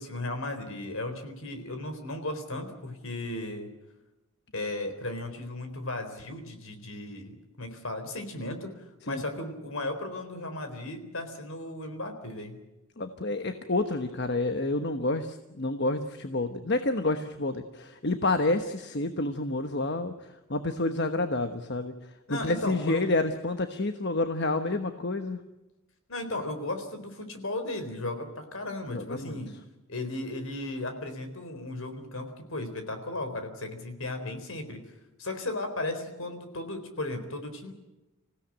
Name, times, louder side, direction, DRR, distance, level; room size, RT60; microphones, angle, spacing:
voice 1, 0.0-3.7 4.5-12.6 22.3-23.1 26.1-29.5 29.9-34.8 35.2-37.7, left 2 dB, 70° left, 7 dB, 4.1 m, -35 dB
voice 2, 13.0-25.4 28.9-29.3, left 2 dB, 50° left, 8 dB, 1.2 m, -29 dB
26.5 x 16.5 x 9.0 m, 1.0 s
head